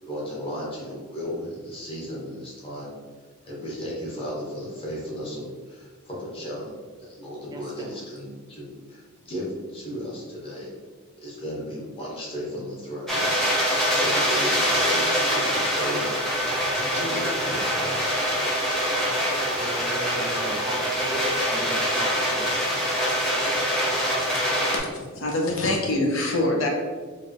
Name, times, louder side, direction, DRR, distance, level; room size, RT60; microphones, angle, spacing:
voice 1, 0.0-2.9 3.4-6.7 7.0-10.7 11.2-13.3 13.8-16.1 16.7-18.0 18.3-18.6, equal, 25° left, -5 dB, 1.1 m, -35 dB
voice 2, 7.5-7.9 19.6-22.6, right 2 dB, 20° right, -1 dB, 0.4 m, -35 dB
sound 1, 13.1-24.8, equal, ahead, 0.8 m, -24 dB
voice 3, 24.7-26.7, left 2 dB, 65° left, 0 dB, 0.7 m, -25 dB
4.5 x 2.4 x 3.4 m, 1.5 s
head